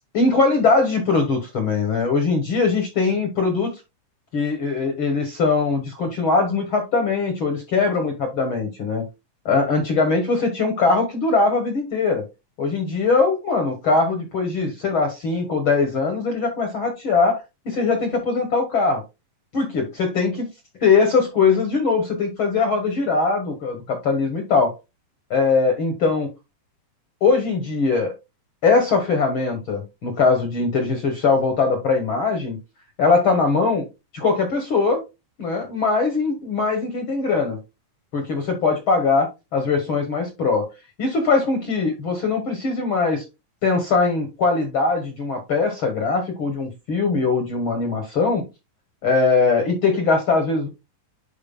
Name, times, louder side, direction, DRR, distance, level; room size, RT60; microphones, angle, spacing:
voice 1, 0.1-3.7 4.3-9.0 9.4-12.3 12.6-19.0 19.5-20.5 20.8-24.7 25.3-26.3 27.2-28.1 28.6-32.6 33.0-33.8 34.1-35.0 35.4-37.6 38.1-40.7 41.0-43.2 43.6-48.4 49.0-50.7, left 4 dB, 55° left, 1.5 m, -21 dB
11.0 x 4.6 x 2.3 m
omnidirectional pair, 3.7 m